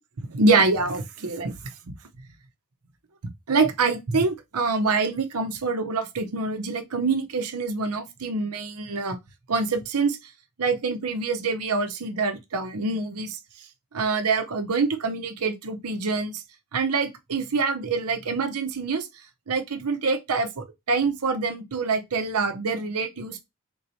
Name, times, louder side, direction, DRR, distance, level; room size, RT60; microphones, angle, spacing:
voice 1, 0.3-1.5 3.5-9.2 9.5-10.2 10.6-13.4 13.9-16.4 16.7-19.1 19.5-23.4, right 4 dB, 90° right, 0.8 m, -25 dB
3.8 x 2.7 x 4.4 m
head